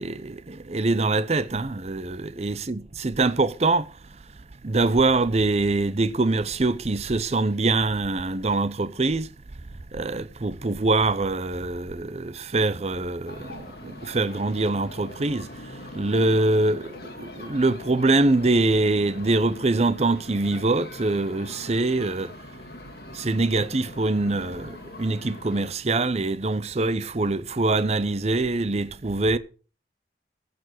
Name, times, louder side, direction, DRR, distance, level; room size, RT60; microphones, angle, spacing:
voice 1, 0.0-3.9 4.6-9.3 9.9-15.5 15.9-22.3 23.1-29.4, right 2 dB, 35° right, 0.6 m, -24 dB
sound 1, 13.3-25.7, left 2 dB, 60° left, 2.0 m, -42 dB
15.5 x 5.2 x 6.1 m
head